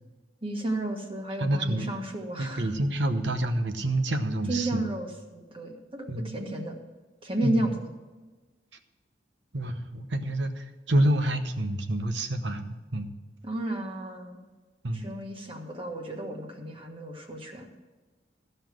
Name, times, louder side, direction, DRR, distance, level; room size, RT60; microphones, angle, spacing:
voice 1, 0.4-2.7 4.5-6.8 7.2-7.9 13.4-14.4 14.9-17.8, right 1 dB, 30° right, 2 dB, 1.6 m, -33 dB
voice 2, 1.4-1.9 2.4-4.8 6.1-6.4 7.4-7.7 9.5-13.1 14.8-15.1, right 1 dB, 75° right, 8 dB, 1.0 m, -28 dB
14.5 x 5.7 x 7.5 m, 1.3 s
head